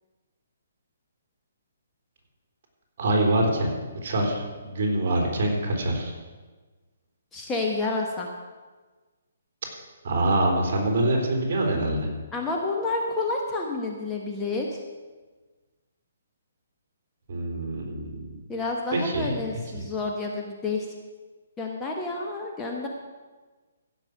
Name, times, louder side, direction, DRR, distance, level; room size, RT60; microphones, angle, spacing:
voice 1, 3.0-3.7 4.0-6.1 10.0-12.1 17.3-18.4 18.9-19.4 19.7-19.9, right 1 dB, 45° right, 1 dB, 3.6 m, -25 dB
voice 2, 7.3-8.3 12.3-14.8 18.5-20.9 21.6-22.9, left 3 dB, 10° left, 0 dB, 1.1 m, -29 dB
15.5 x 6.1 x 7.8 m, 1.3 s
hypercardioid pair, 160°, 0 cm